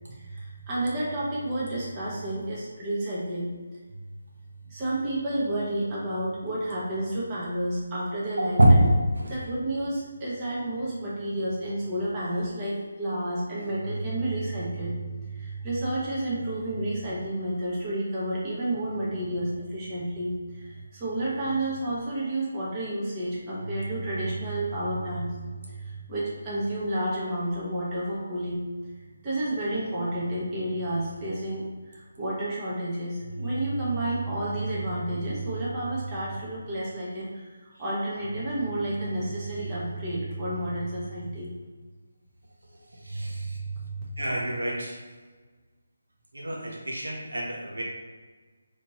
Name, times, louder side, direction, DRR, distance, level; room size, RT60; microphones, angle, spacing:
voice 1, 0.1-3.5 4.6-8.8 9.2-28.6 29.1-41.5 43.1-44.0, right 1 dB, 20° right, -8 dB, 1.2 m, -30 dB
voice 2, 8.6-8.9 43.0-43.6 44.2-45.0 46.3-47.8, right 1 dB, 75° right, -2 dB, 0.9 m, -24 dB
4.1 x 3.1 x 3.0 m, 1.4 s
figure-of-eight pair, 155°, 0 cm